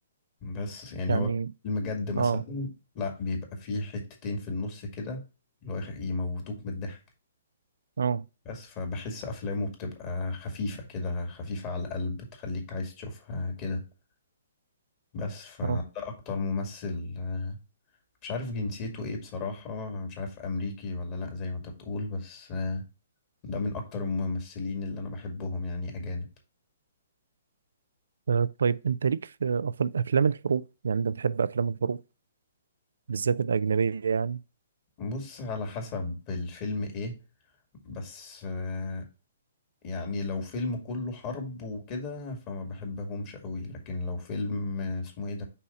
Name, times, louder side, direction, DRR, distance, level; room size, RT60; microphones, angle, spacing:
voice 1, 0.4-1.3 1.6-5.2 5.6-7.0 8.5-13.8 15.1-17.6 18.2-22.8 23.4-26.3 35.0-37.2 37.8-39.1 39.8-45.4, left 3 dB, 35° left, 2.1 m, -34 dB
voice 2, 1.1-1.5 2.2-2.4 8.0-8.2 15.6-15.8 28.3-32.0 33.1-34.4, right 6 dB, 70° right, 0.4 m, -27 dB
5.6 x 3.4 x 5.4 m
figure-of-eight pair, 125°, 0 cm